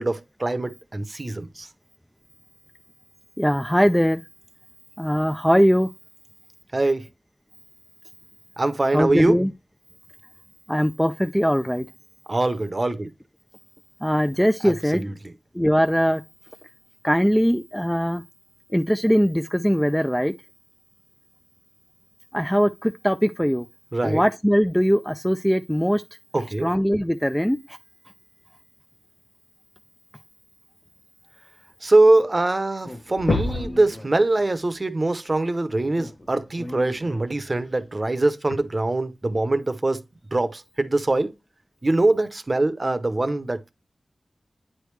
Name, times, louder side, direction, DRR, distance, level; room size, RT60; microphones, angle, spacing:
voice 1, 0.0-1.7 6.7-7.1 8.6-9.4 12.3-13.1 14.6-15.1 23.9-24.2 26.3-26.7 31.8-40.0 40.3-41.3 41.8-43.7, right 2 dB, 35° right, 0.7 m, -23 dB
voice 2, 3.4-4.2 5.0-5.9 8.9-9.5 10.7-11.9 14.0-15.0 15.5-16.2 17.0-18.2 18.7-20.3 22.3-23.7 24.0-26.0 26.6-27.8, equal, 5° left, 0.4 m, -21 dB
sound 1, 32.3-32.4 32.6-32.9 33.2-33.8 35.5-35.6 37.5-37.6 38.5-38.6, left 2 dB, 75° left, 0.7 m, -25 dB
Speech, 32.8-34.7 35.9-37.7, left 1 dB, 35° left, 1.3 m, -40 dB
9.0 x 3.3 x 3.1 m
wide cardioid pair, 55°, 0 cm